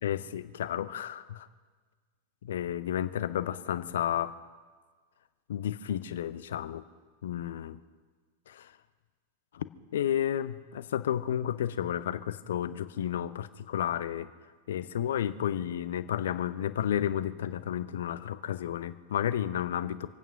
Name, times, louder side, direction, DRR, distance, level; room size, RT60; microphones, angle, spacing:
voice 1, 0.0-1.5 2.5-4.3 5.5-6.8 7.2-7.8 8.5-8.7 9.5-9.6 9.9-14.3 14.7-20.1, left 10 dB, 60° left, 14 dB, 0.6 m, -32 dB
26.0 x 9.1 x 5.9 m, 1.5 s
figure-of-eight pair, 90°, 0 cm